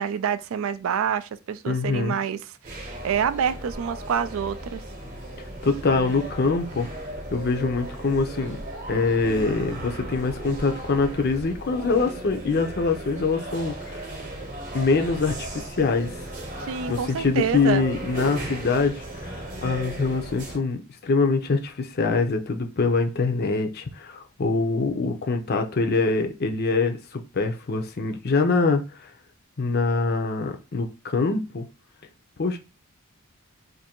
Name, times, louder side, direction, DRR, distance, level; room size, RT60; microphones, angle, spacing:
voice 1, 0.0-2.4 2.7-4.8 16.7-17.8, right 7 dB, 65° right, 0.3 m, -27 dB
voice 2, 1.7-2.1 5.6-6.9 7.3-8.6 8.9-14.1 14.7-16.1 16.9-19.3 19.6-29.1 29.6-31.6 32.4-32.6, left 4 dB, 45° left, 0.6 m, -24 dB
sound 1, 2.6-20.6, right 1 dB, 40° right, 0.9 m, -36 dB
2.6 x 2.6 x 4.2 m
head